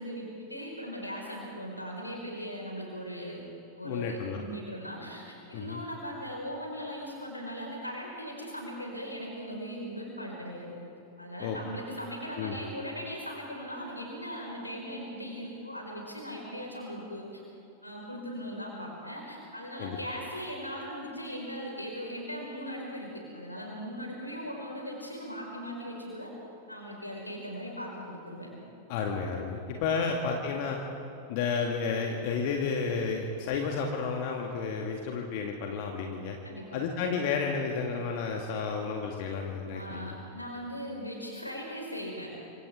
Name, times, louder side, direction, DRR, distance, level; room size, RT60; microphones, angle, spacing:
voice 1, 0.0-3.4 3.8-10.7 11.2-17.4 17.8-26.3 26.7-28.5 36.4-36.8 39.7-42.3, equal, 85° left, -1 dB, 5.1 m, -39 dB
voice 2, 3.8-4.4 5.5-5.8 11.4-11.6 12.4-12.6 19.8-20.0 28.9-30.8 31.3-36.4 36.7-40.1, left 5 dB, 45° left, 1 dB, 1.9 m, -31 dB
27.5 x 25.5 x 3.7 m, 2.9 s
figure-of-eight pair, 90°, 0 cm